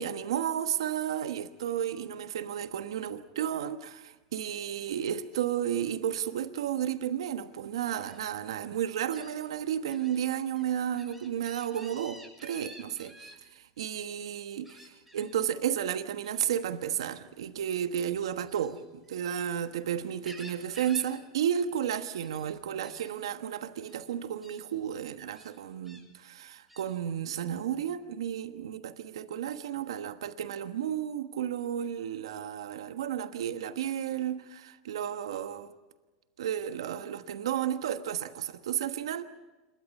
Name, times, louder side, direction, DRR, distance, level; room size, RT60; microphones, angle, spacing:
voice 1, 0.0-35.7 36.4-39.2, right 9 dB, 90° right, 1.3 m, -33 dB
Gull seagull, 8.0-8.2 9.1-9.3 9.9-10.2 10.5-13.4 14.6-15.3 16.2-16.5 18.4-19.6 20.0-21.1 21.4-21.7 22.0-22.5 22.8-23.1 23.8-24.0 24.4-24.6 25.3-26.0 26.7-26.9, equal, 5° right, 7.7 m, -51 dB
27.5 x 23.0 x 5.4 m
supercardioid pair, 110°, 3 cm